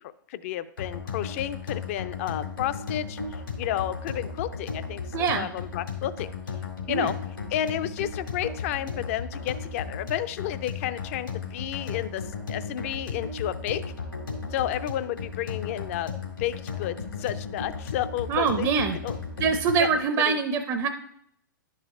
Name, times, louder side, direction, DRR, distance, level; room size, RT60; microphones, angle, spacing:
voice 1, 0.3-3.2 3.6-6.3 6.9-7.1 7.5-12.2 12.5-13.8 14.5-16.1 16.4-18.7 19.0-19.2 19.8-20.4, left 12 dB, 40° left, 14 dB, 0.5 m, -31 dB
sound 1, 0.8-20.0, left 5 dB, 80° left, 1.9 m, -35 dB
voice 2, 5.1-5.5 6.9-7.1 18.3-19.0 19.4-20.9, right 5 dB, 25° right, 6 dB, 0.5 m, -24 dB
11.0 x 5.5 x 3.6 m, 0.73 s
figure-of-eight pair, 115°, 11 cm